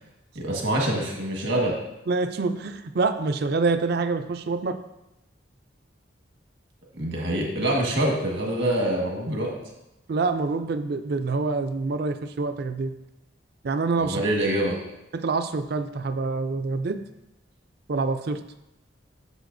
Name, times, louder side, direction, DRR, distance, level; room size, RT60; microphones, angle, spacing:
voice 1, 0.3-1.7 6.9-9.5 14.0-14.8, right 1 dB, 75° right, -1 dB, 1.6 m, -25 dB
voice 2, 2.1-4.8 10.1-12.9 13.6-14.2 15.1-17.0 17.9-18.4, right 3 dB, 55° right, 9 dB, 0.4 m, -26 dB
8.0 x 6.4 x 2.6 m, 0.91 s
head